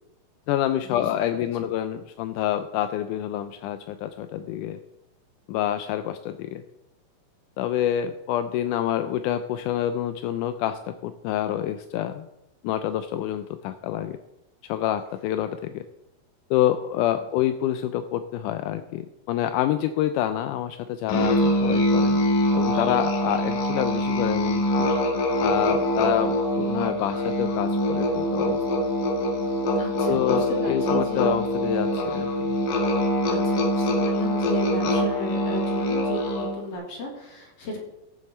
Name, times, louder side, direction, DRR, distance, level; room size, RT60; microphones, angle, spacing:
voice 1, 0.5-4.8 5.5-6.6 7.6-12.3 12.6-14.2 14.6-15.8 16.5-22.2 22.5-24.9 25.4-28.6 30.1-32.3, left 11 dB, 85° left, 10 dB, 1.8 m, -27 dB
Musical instrument, 21.1-36.6, left 1 dB, 70° left, 3.2 m, -24 dB
voice 2, 29.8-31.3 33.3-37.8, left 1 dB, 50° left, 0 dB, 2.8 m, -35 dB
16.0 x 7.2 x 4.3 m, 0.92 s
omnidirectional pair, 4.1 m